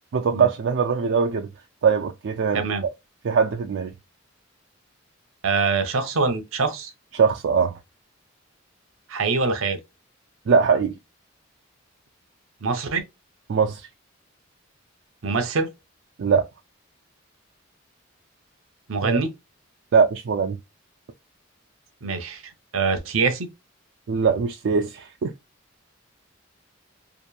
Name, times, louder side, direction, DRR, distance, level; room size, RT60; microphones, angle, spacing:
voice 1, 0.1-1.5 1.8-2.6 3.2-3.9 7.1-7.8 10.5-11.0 13.5-13.9 16.2-16.5 19.0-19.2 19.9-20.6 24.1-25.3, right 5 dB, 60° right, 0.4 m, -21 dB
voice 2, 2.5-2.8 5.4-6.9 9.1-9.8 12.6-13.0 15.2-15.7 18.9-19.3 22.0-22.4 22.7-23.5, right 4 dB, 80° right, 0.7 m, -24 dB
2.9 x 2.6 x 2.2 m
head